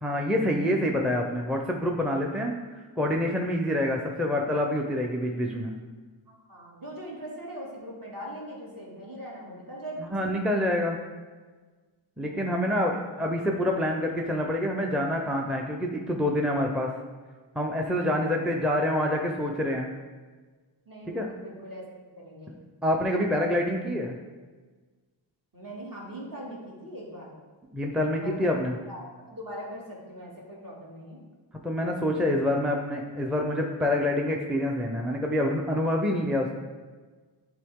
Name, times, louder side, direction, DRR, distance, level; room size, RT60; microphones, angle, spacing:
voice 1, 0.0-5.7 10.0-11.0 12.2-16.9 17.6-19.9 21.1-21.3 22.8-24.2 27.7-28.8 31.6-36.5, left 1 dB, ahead, 1 dB, 0.5 m, -27 dB
voice 2, 6.3-10.3 12.2-12.9 18.0-18.4 20.9-21.8 22.1-22.5 25.5-27.3 28.2-28.5 28.9-31.2, equal, 45° right, -4 dB, 2.1 m, -41 dB
10.5 x 3.9 x 3.6 m, 1.4 s
wide cardioid pair, 95°, 47 cm